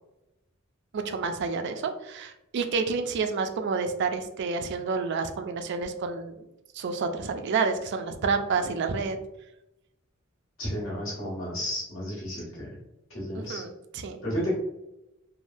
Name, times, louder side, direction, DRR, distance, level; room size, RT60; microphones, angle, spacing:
voice 1, 0.9-6.4 6.8-9.2 13.3-14.2, right 4 dB, 55° right, 7 dB, 0.3 m, -29 dB
voice 2, 10.6-12.8 13.1-13.6 14.2-14.5, equal, 80° left, -6 dB, 1.5 m, -32 dB
3.3 x 2.1 x 2.6 m, 0.89 s
head